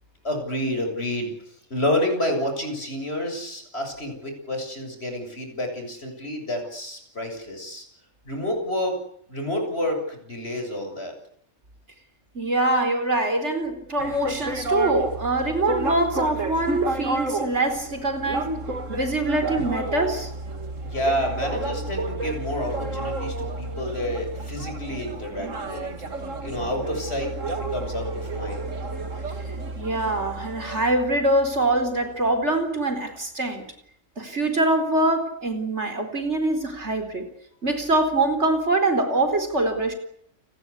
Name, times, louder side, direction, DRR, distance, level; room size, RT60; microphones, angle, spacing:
voice 1, 0.2-1.3 1.7-7.8 8.3-9.0 9.3-11.1 20.9-25.8 26.4-28.7, left 1 dB, 55° left, 4 dB, 7.6 m, -29 dB
voice 2, 12.3-18.5 18.9-20.3 29.8-33.6 34.2-37.2 37.6-39.9, right 2 dB, 65° right, 8 dB, 4.6 m, -24 dB
sound 1, 14.0-32.6, right 2 dB, 85° right, 2.7 m, -31 dB
29.5 x 20.5 x 8.4 m, 0.70 s
omnidirectional pair, 1.3 m